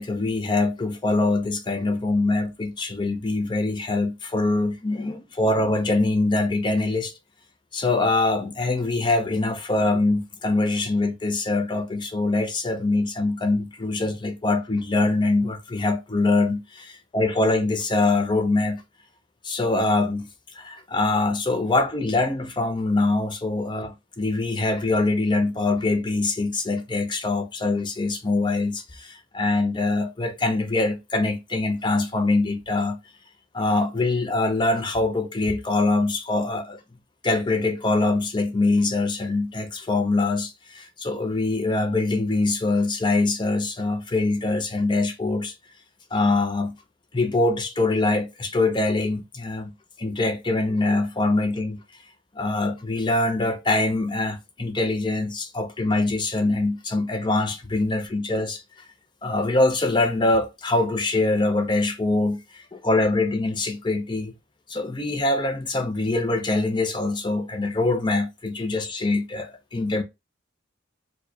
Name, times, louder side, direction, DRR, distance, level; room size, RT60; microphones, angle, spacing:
voice 1, 0.0-7.1 7.7-18.8 19.4-20.3 20.5-33.0 33.5-36.8 37.2-45.5 46.1-46.7 47.1-49.7 50.0-51.8 52.4-58.8 59.2-64.3 64.7-70.0, left 2 dB, 25° left, 0.6 m, -24 dB
4.3 x 2.3 x 2.8 m
head